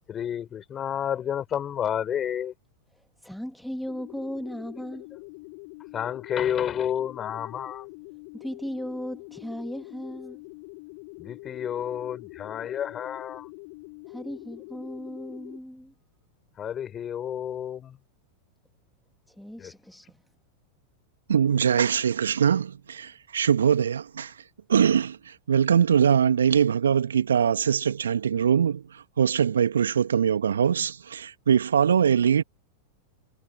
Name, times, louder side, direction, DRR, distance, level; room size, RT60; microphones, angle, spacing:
voice 1, 0.1-2.5 5.9-7.9 11.2-13.5 16.6-18.0 19.6-19.7, left 9 dB, 30° left, 5.4 m, -30 dB
voice 2, 2.9-5.1 8.3-10.4 14.1-15.9 19.3-20.2, equal, ahead, 2.4 m, -37 dB
sound 1, 3.9-15.6, left 29 dB, 50° left, 6.1 m, -44 dB
voice 3, 21.3-24.3 24.7-32.4, right 8 dB, 75° right, 2.0 m, -22 dB
figure-of-eight pair, 90°, 0 cm